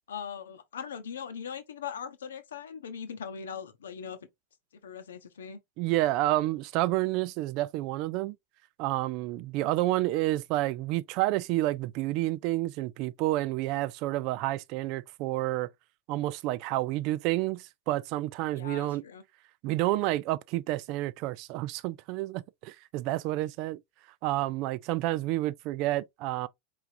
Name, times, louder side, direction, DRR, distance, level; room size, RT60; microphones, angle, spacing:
voice 1, 0.1-4.2 4.8-5.6 18.6-19.2, left 7 dB, 65° left, 0.8 m, -40 dB
voice 2, 5.8-8.4 8.8-15.7 16.1-19.0 19.6-23.8 24.2-26.5, right 17 dB, 40° right, 0.4 m, -29 dB
4.5 x 3.4 x 2.6 m
figure-of-eight pair, 90°, 0 cm